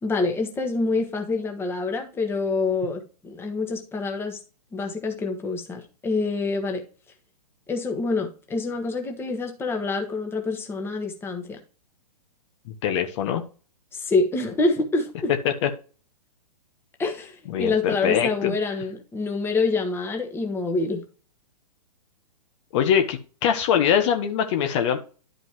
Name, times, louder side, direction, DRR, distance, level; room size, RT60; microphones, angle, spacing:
voice 1, 0.0-4.4 4.7-6.8 7.7-11.6 13.9-15.3 17.0-21.0, left 3 dB, 10° left, 1.4 m, -26 dB
voice 2, 12.8-13.4 15.4-15.7 17.5-17.7 18.0-18.5 22.7-25.0, left 8 dB, 45° left, 1.2 m, -22 dB
11.0 x 5.3 x 3.1 m
hypercardioid pair, 135°, 21 cm